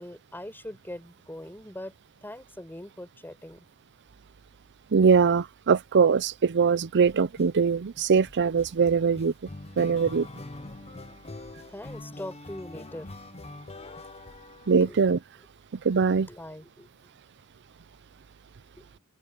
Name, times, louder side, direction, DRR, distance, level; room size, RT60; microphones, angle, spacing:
voice 1, 0.0-1.9 2.2-3.7 11.7-13.1 14.8-15.0 16.3-16.9 18.8-18.9, left 1 dB, 10° left, 6.0 m, -41 dB
voice 2, 4.9-9.3 9.8-10.3 14.7-15.2 15.8-16.3, right 5 dB, 50° right, 0.5 m, -22 dB
sound 1, 7.1-7.5 8.0-15.2, left 2 dB, 30° left, 0.9 m, -44 dB
open air
head